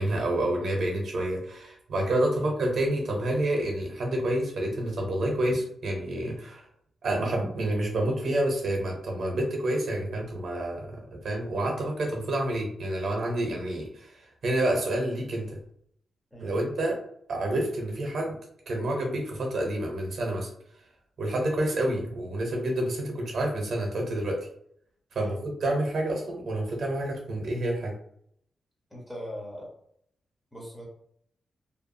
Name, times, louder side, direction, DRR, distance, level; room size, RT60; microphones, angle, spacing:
voice 1, 0.0-6.7 7.0-15.5 16.4-17.0 17.3-18.4 18.7-20.5 21.2-24.5 25.1-27.9, right 1 dB, 60° right, 0 dB, 0.7 m, -28 dB
voice 2, 28.9-29.7 30.5-30.8, equal, 5° left, -3 dB, 0.9 m, -40 dB
2.7 x 2.2 x 2.6 m, 0.67 s
wide cardioid pair, 135°, 0 cm